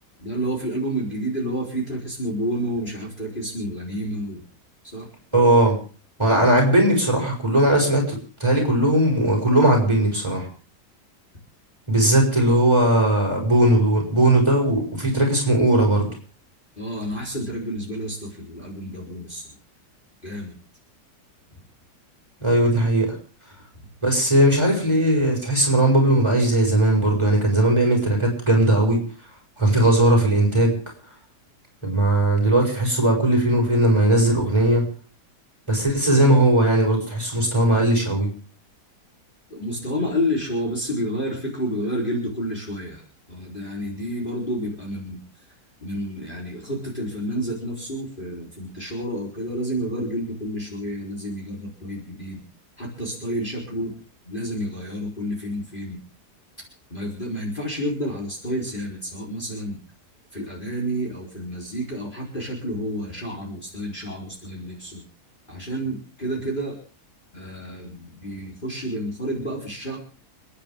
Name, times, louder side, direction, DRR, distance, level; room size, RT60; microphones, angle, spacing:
voice 1, 0.2-4.4 4.8-5.1 16.8-19.6 20.2-20.5 23.8-23.9 39.5-43.0 43.3-45.2 45.8-52.4 52.8-53.9 54.2-56.0 56.9-59.8 60.3-65.0 65.5-66.8 67.3-70.0, equal, 30° left, -3 dB, 4.3 m, -30 dB
voice 2, 5.3-5.8 6.2-10.4 11.9-16.1 22.4-23.1 24.0-29.0 29.6-30.8 31.8-34.9 35.7-38.3, right 1 dB, 15° right, -1 dB, 7.0 m, -18 dB
29.5 x 10.0 x 3.7 m, 0.39 s
omnidirectional pair, 1.8 m